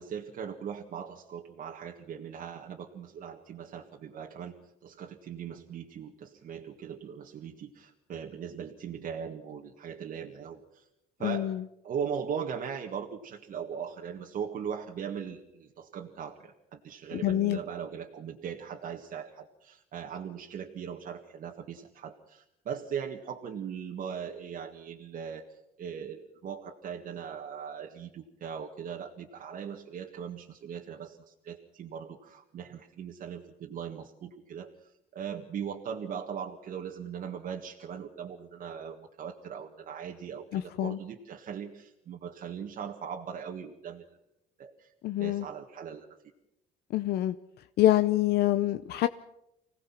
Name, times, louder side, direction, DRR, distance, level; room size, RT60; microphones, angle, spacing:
voice 1, 0.0-10.9 11.2-11.5 11.8-44.0 44.6-46.2, right 7 dB, 55° right, 1 dB, 1.8 m, -39 dB
voice 2, 11.2-11.6 17.2-17.6 40.5-41.0 45.0-45.5 46.9-47.4 47.8-49.1, left 14 dB, 70° left, 11 dB, 0.7 m, -26 dB
25.5 x 17.5 x 5.9 m, 0.83 s
cardioid pair, 110°, 17 cm